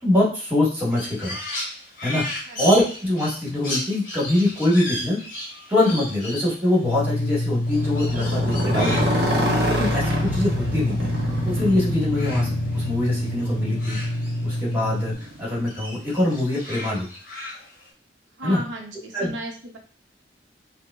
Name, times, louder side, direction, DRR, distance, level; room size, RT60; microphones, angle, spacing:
voice 1, 0.0-1.4 2.0-2.2 2.6-5.2 5.7-9.3 9.7-11.1 11.5-14.0 14.4-15.1 15.4-17.1 18.4-18.6 19.1-19.3, left 1 dB, 10° right, -5 dB, 1.2 m, -23 dB
Crow, 0.9-11.6 11.9-14.9 15.2-17.9, left 1 dB, 45° left, 1.2 m, -35 dB
sound 1, 6.8-15.1, left 1 dB, 65° left, 0.8 m, -27 dB
Motorcycle, 7.7-15.7, equal, 60° right, 0.8 m, -28 dB
voice 2, 18.4-19.8, right 1 dB, 85° right, 1 dB, 0.6 m, -34 dB
4.6 x 2.0 x 2.3 m, 0.40 s
head